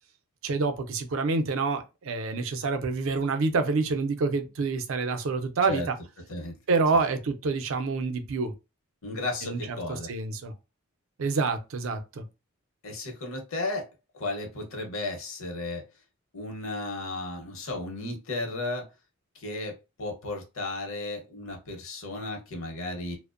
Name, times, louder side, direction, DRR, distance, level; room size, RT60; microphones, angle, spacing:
voice 1, 0.4-6.0 6.7-8.5 9.4-9.6 9.9-10.5 11.2-12.2, right 4 dB, 65° right, 0.4 m, -27 dB
voice 2, 9.0-10.1 12.8-13.9 14.1-15.8 16.3-18.9 19.3-23.2, left 2 dB, 70° left, 0.8 m, -34 dB
2.5 x 2.0 x 2.4 m
head